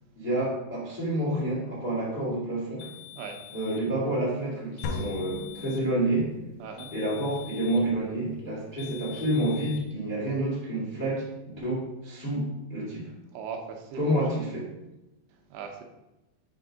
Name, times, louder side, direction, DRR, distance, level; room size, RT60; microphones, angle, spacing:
voice 1, 0.2-2.9 3.5-6.3 6.9-13.1 14.0-14.7, right 1 dB, 55° left, -6 dB, 0.5 m, -29 dB
sound 1, 2.8-3.9 4.8-5.9 6.8-7.9 8.8-9.8, left 16 dB, 70° left, 2.1 m, -46 dB
sound 2, 4.8-6.5, left 3 dB, 90° left, 3.0 m, -36 dB
voice 2, 6.6-6.9 13.3-14.0 15.3-15.8, right 6 dB, 80° right, 3 dB, 2.6 m, -39 dB
7.5 x 3.4 x 5.0 m, 0.95 s
omnidirectional pair, 5.0 m